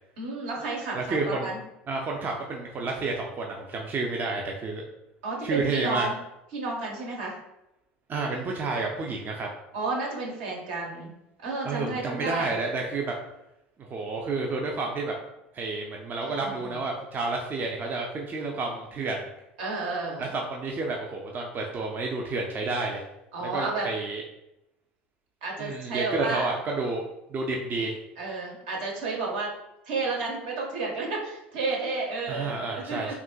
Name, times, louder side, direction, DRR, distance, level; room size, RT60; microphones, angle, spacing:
voice 1, 0.2-1.6 5.2-6.2 6.5-7.4 9.7-11.1 11.4-12.5 16.2-16.8 19.6-20.3 23.3-23.9 25.4-26.5 28.2-29.5 29.9-33.1, right 3 dB, 70° right, -2 dB, 1.0 m, -31 dB
voice 2, 0.9-1.5 1.9-4.8 5.4-6.1 8.1-9.5 11.6-13.1 13.8-15.1 15.5-19.3 20.2-23.0 23.5-24.2 25.6-28.0 32.3-33.1, right 3 dB, 30° right, 0 dB, 0.5 m, -30 dB
3.6 x 2.7 x 2.2 m, 0.89 s
figure-of-eight pair, 70°, 6 cm